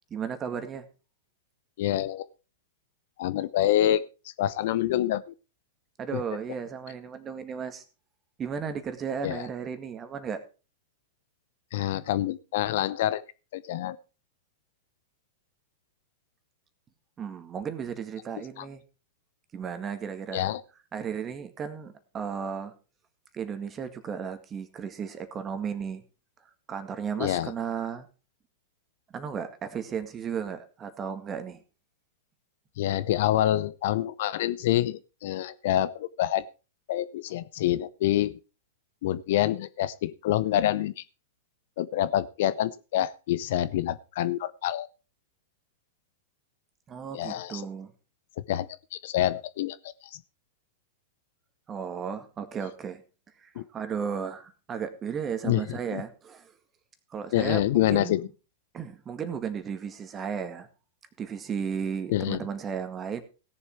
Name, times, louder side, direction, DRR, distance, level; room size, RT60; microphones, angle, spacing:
voice 1, 0.1-0.9 6.0-7.8 8.4-10.4 17.2-18.8 19.5-20.5 20.9-22.7 23.3-26.0 26.7-28.1 29.1-31.6 46.9-47.9 51.7-53.0 53.4-56.5 57.1-58.2 58.7-60.7 61.2-63.2, right 7 dB, 25° right, 9 dB, 1.9 m, -34 dB
voice 2, 1.8-2.2 3.2-4.0 4.4-5.3 6.1-6.2 9.2-9.5 11.7-13.2 13.5-14.0 18.6-18.7 20.3-20.6 27.2-27.5 32.8-36.4 36.9-38.4 39.0-41.0 41.8-44.9 47.1-47.7 48.5-49.8 50.1-50.2 53.6-53.7 55.4-56.0 57.3-58.3 62.1-62.4, left 13 dB, 55° left, 16 dB, 0.6 m, -27 dB
17.0 x 7.2 x 4.5 m, 0.33 s
figure-of-eight pair, 100°, 0 cm